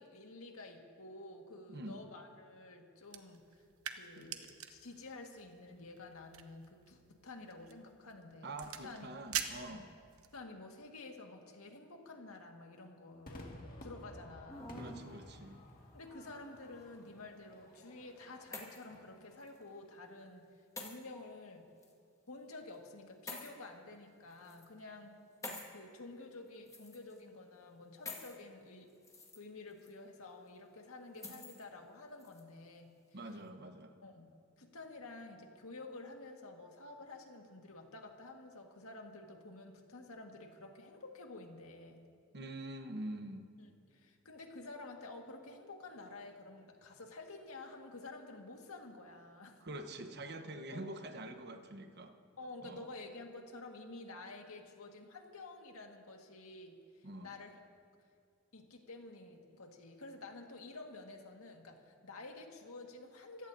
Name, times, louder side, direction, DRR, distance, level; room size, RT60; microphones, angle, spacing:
voice 1, 0.0-3.4 3.9-8.5 8.8-9.1 9.7-9.8 10.3-14.8 15.9-20.5 20.8-21.7 22.3-25.1 25.7-28.9 29.4-32.9 34.0-34.3 34.6-42.1 43.6-49.6 50.7-50.9 52.4-57.6 58.5-63.5, left 2 dB, 90° left, 2 dB, 1.8 m, -50 dB
sound 1, 3.0-10.4, right 8 dB, 80° right, 1.0 m, -46 dB
voice 2, 8.4-9.9 14.7-15.6 25.4-25.5 33.1-33.9 42.3-43.5 49.6-52.2 52.6-52.9 57.0-57.4, right 1 dB, 50° right, 7 dB, 1.1 m, -45 dB
Crowd / Fireworks, 13.3-19.8, left 1 dB, 45° left, 1.9 m, -54 dB
sound 2, 14.5-15.1 16.0-16.7 18.0-18.9 19.4-19.6 20.8-21.0 21.8-21.9 23.3-23.5 24.3-24.7 25.4-25.7 26.7-27.2 28.0-28.3 28.9-29.4 29.8-29.9 31.2-31.6 32.2-32.4, left 2 dB, 15° left, 1.9 m, -47 dB
26.5 x 16.0 x 2.7 m, 2.3 s
head